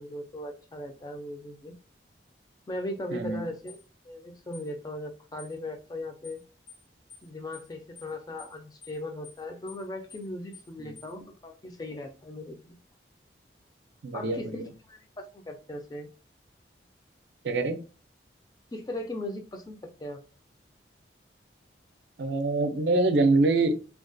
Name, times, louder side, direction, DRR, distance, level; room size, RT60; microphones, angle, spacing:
voice 1, 0.0-1.7 2.7-3.8 4.1-6.4 7.2-12.8 14.1-16.1 18.7-20.2, left 1 dB, 20° left, 4 dB, 0.3 m, -38 dB
voice 2, 3.1-3.4 10.8-11.0 14.0-14.7 17.4-17.8 22.2-23.8, right 2 dB, 65° right, 8 dB, 0.4 m, -25 dB
sound 1, 3.7-3.8 4.5-4.7 5.4-5.6 6.2-6.4 6.7-6.8 7.1-7.3 7.5-7.7 8.0-8.1 8.4-8.6 8.8-9.0 9.2-9.4 9.7-9.8 10.1-10.3 10.5-10.7 11.0-11.1, left 6 dB, 85° left, 1.0 m, -50 dB
2.3 x 2.2 x 2.5 m, 0.35 s
head